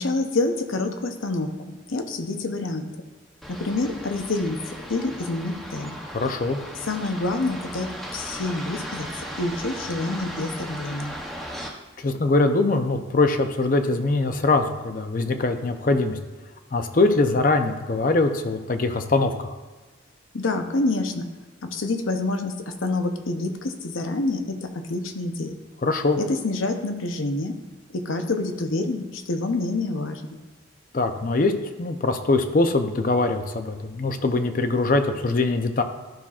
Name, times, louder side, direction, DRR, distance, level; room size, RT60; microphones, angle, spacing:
voice 1, 0.0-2.9 3.5-4.6 4.9-6.0 6.9-11.2 20.3-21.3 21.6-25.6 26.2-27.5 27.9-30.2, left 2 dB, 85° left, 6 dB, 0.7 m, -27 dB
sound 1, 3.4-11.7, equal, ahead, 0.7 m, -37 dB
voice 2, 6.1-6.6 12.0-16.2 16.7-19.5 25.8-26.2 30.9-31.5 31.8-35.8, left 3 dB, 45° left, 7 dB, 0.5 m, -22 dB
12.0 x 5.7 x 2.4 m, 1.2 s
head